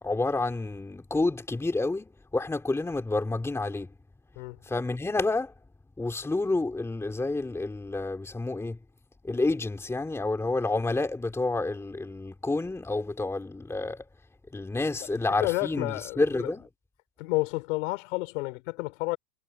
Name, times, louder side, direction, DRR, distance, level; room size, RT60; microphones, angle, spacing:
voice 1, 0.0-3.9 4.6-5.5 6.0-8.8 9.2-14.1 14.5-16.7, left 2 dB, 5° left, 3.0 m, -29 dB
voice 2, 15.4-16.5 17.2-19.2, left 23 dB, 50° left, 6.3 m, -30 dB
hypercardioid pair, 140°, 48 cm